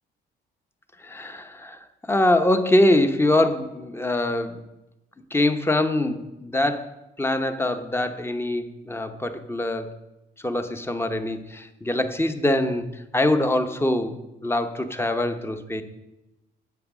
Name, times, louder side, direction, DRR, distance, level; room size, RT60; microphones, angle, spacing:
voice 1, 1.0-1.8 2.1-4.6 5.3-6.9 7.2-10.0 10.4-15.8, left 1 dB, 10° left, 9 dB, 0.9 m, -23 dB
9.4 x 7.3 x 6.1 m, 0.99 s
cardioid pair, 90°, 20 cm